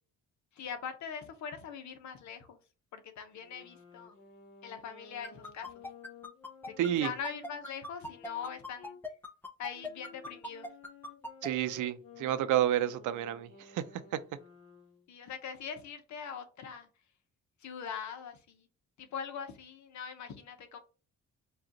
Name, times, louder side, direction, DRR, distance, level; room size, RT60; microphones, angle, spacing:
voice 1, 0.6-2.6 2.9-4.1 4.6-5.7 6.7-9.0 9.6-10.7 15.1-16.9 17.6-18.7 19.0-20.8, left 7 dB, 70° left, 0.9 m, -42 dB
sound 1, 3.3-9.0 9.7-15.1, left 6 dB, 50° left, 1.3 m, -55 dB
timer first half (loop), 5.2-11.5, left 1 dB, 5° left, 0.7 m, -40 dB
voice 2, 6.8-7.1 11.4-14.2, right 12 dB, 80° right, 0.6 m, -30 dB
5.0 x 2.4 x 2.8 m
cardioid pair, 90°, 30 cm